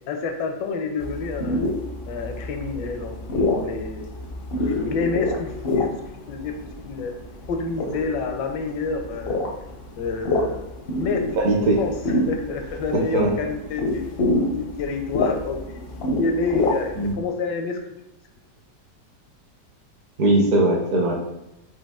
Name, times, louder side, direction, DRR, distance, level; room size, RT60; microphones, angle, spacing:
voice 1, 0.1-1.6 2.1-4.1 4.6-5.9 6.3-6.6 6.8-7.1 7.5-9.5 10.0-11.2 11.6-11.9 12.3-14.1 14.5-15.8 16.1-17.8, left 4 dB, 85° left, 5 dB, 1.3 m, -28 dB
sound 1, 1.0-17.1, left 2 dB, 60° left, 0.6 m, -27 dB
voice 2, 11.4-11.8 13.1-13.3 17.0-17.2 20.2-21.1, right 1 dB, 60° right, 1 dB, 1.1 m, -19 dB
5.3 x 2.7 x 3.5 m, 0.87 s
omnidirectional pair, 1.9 m